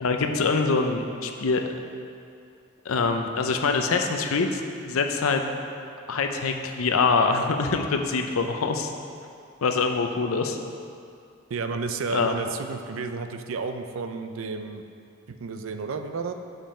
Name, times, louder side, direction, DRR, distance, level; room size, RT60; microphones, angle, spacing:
voice 1, 0.0-1.6 2.8-5.4 6.1-8.9 9.6-10.6 12.1-12.4, left 4 dB, 90° left, 5 dB, 0.6 m, -24 dB
voice 2, 11.5-14.8 15.3-16.3, right 4 dB, 75° right, 7 dB, 0.5 m, -32 dB
7.4 x 5.3 x 4.3 m, 2.5 s
head